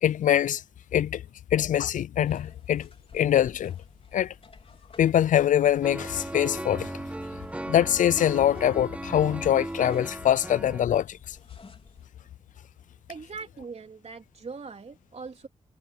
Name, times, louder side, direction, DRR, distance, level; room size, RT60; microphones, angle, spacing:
voice 1, 0.0-0.6 0.9-1.2 1.5-2.9 3.1-3.7 4.1-4.3 5.0-6.9 7.7-11.4, left 10 dB, 85° left, 0.4 m, -23 dB
sound 1, 2.3-12.1, left 4 dB, 45° left, 4.3 m, -54 dB
sound 2, 5.8-10.8, right 1 dB, 10° right, 1.4 m, -36 dB
voice 2, 13.1-15.5, right 4 dB, 55° right, 3.4 m, -41 dB
cardioid pair, 70°, 13 cm